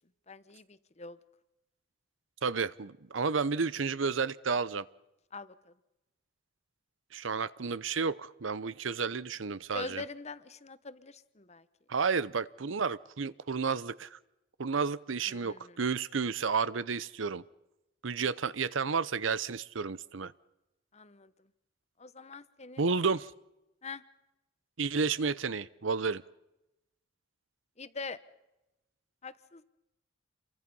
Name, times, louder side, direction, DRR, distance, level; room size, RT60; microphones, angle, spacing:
voice 1, 0.3-1.2 5.3-5.7 9.7-11.7 15.3-15.8 20.9-21.3 22.0-23.1 23.8-24.0 27.8-28.2 29.2-29.6, left 4 dB, 35° left, 14 dB, 1.0 m, -44 dB
voice 2, 2.4-4.8 7.1-10.0 11.9-14.2 14.6-17.4 18.0-20.3 22.8-23.3 24.8-26.2, right 5 dB, 85° right, 18 dB, 0.8 m, -31 dB
28.0 x 23.5 x 5.5 m, 0.94 s
head